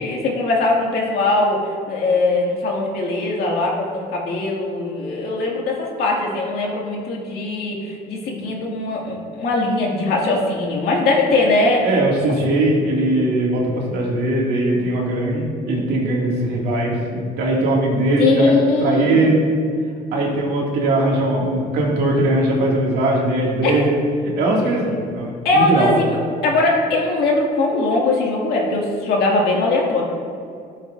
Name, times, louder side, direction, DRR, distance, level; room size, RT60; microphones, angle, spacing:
voice 1, 0.0-1.6 1.9-11.8 18.2-19.3 23.6-23.9 25.4-26.1 26.4-30.0, left 2 dB, 70° left, -2 dB, 2.1 m, -20 dB
voice 2, 11.8-18.5 18.8-19.4 20.1-24.0 24.4-26.0, right 1 dB, 75° right, -3 dB, 2.2 m, -20 dB
12.5 x 7.3 x 2.6 m, 2.3 s
cardioid pair, 110°, 17 cm